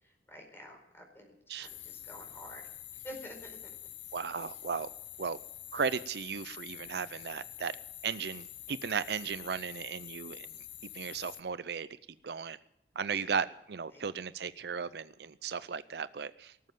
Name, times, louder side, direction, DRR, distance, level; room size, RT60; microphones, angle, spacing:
voice 1, 0.0-2.6 3.0-3.6 13.1-13.5 13.9-14.2, equal, 15° left, 1 dB, 4.6 m, -50 dB
sound 1, 1.6-11.4, left 12 dB, 85° left, 1.0 m, -47 dB
voice 2, 4.1-4.9 5.2-5.4 5.7-7.7 8.0-10.5 10.9-11.9 12.2-12.6 13.0-16.5, right 6 dB, 70° right, 15 dB, 0.5 m, -35 dB
19.0 x 7.6 x 9.2 m, 0.79 s
head